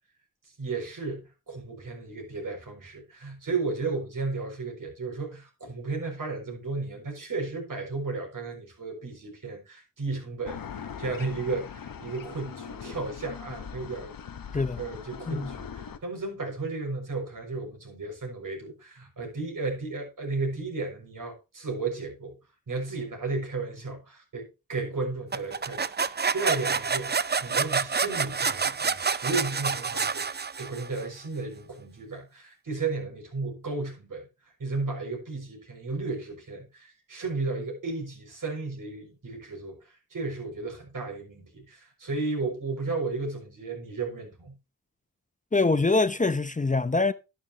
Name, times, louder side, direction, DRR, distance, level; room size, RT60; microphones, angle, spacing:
voice 1, 0.6-14.1 14.8-22.3 22.7-34.3 34.6-39.8 40.1-44.6, right 3 dB, 70° right, 6.3 m, -34 dB
sound 1, 10.5-16.0, left 7 dB, 85° left, 1.1 m, -41 dB
sound 2, 25.3-31.0, right 5 dB, 30° right, 0.6 m, -28 dB
voice 2, 45.5-47.1, left 3 dB, 25° left, 0.7 m, -24 dB
11.0 x 10.5 x 2.9 m
cardioid pair, 60°, 33 cm